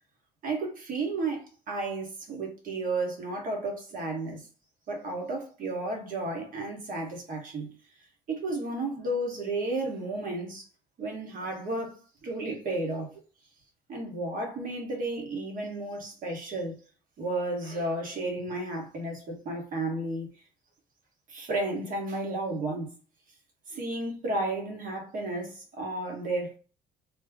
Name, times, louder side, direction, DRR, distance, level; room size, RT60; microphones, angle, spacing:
voice 1, 0.4-4.5 4.9-7.8 8.3-10.7 11.0-12.0 12.2-13.2 13.9-16.8 17.2-20.3 21.3-22.9 23.7-26.6, right 2 dB, 55° right, 1.4 m, -33 dB
3.2 x 2.2 x 3.5 m
cardioid pair, 110°, 17 cm